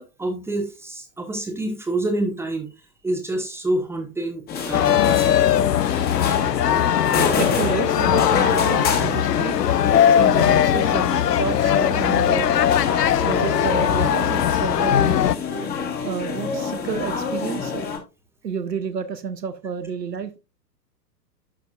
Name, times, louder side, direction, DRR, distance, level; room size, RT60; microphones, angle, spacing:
voice 1, 0.0-2.7 3.0-5.5, right 1 dB, 5° right, 4 dB, 0.9 m, -27 dB
sound 1, 4.5-18.0, left 5 dB, 20° left, 1.6 m, -27 dB
sound 2, 4.7-15.4, left 10 dB, 75° left, 0.6 m, -20 dB
voice 2, 7.4-9.5 10.2-12.5 13.2-15.2 16.0-17.9 18.4-20.4, right 6 dB, 75° right, 9 dB, 0.9 m, -30 dB
11.0 x 5.9 x 2.4 m, 0.28 s
figure-of-eight pair, 110°, 50 cm